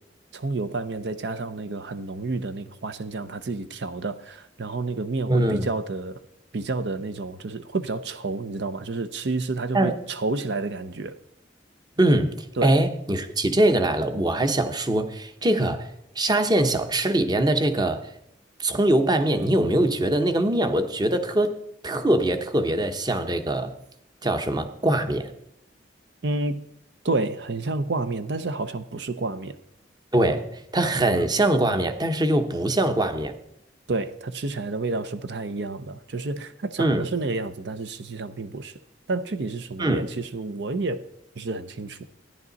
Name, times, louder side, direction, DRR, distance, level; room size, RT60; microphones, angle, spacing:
voice 1, 0.3-6.2 6.5-11.2 12.6-12.8 26.2-26.7 27.0-29.6 33.9-38.7 39.1-41.1 41.4-42.0, right 3 dB, 65° right, 0.6 m, -30 dB
voice 2, 5.3-5.7 9.7-10.0 12.0-18.0 18.6-21.6 21.8-23.7 24.2-25.3 30.1-33.3 36.8-37.1 39.8-40.1, right 1 dB, 20° right, 0.9 m, -22 dB
13.5 x 10.0 x 4.0 m
head